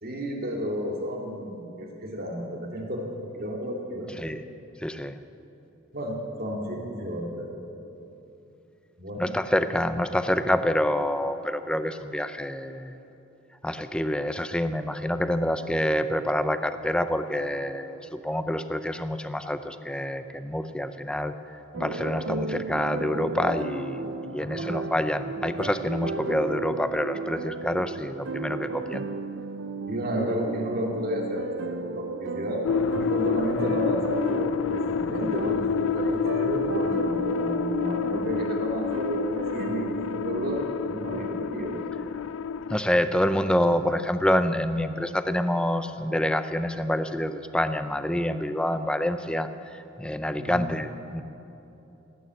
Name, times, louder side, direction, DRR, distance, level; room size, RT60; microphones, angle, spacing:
voice 1, 0.0-4.1 5.9-7.5 9.0-9.3 24.6-24.7 29.9-32.6 32.9-41.9 50.4-50.6, equal, 50° right, 0 dB, 2.4 m, -32 dB
voice 2, 4.8-5.2 9.2-13.0 13.6-21.4 21.8-29.1 42.7-51.2, left 1 dB, 5° left, 10 dB, 0.5 m, -27 dB
sound 1, 21.7-40.6, right 4 dB, 65° right, 0.6 m, -34 dB
sound 2, 32.6-42.8, left 6 dB, 85° left, 0.3 m, -29 dB
17.0 x 9.4 x 8.2 m, 2.9 s
head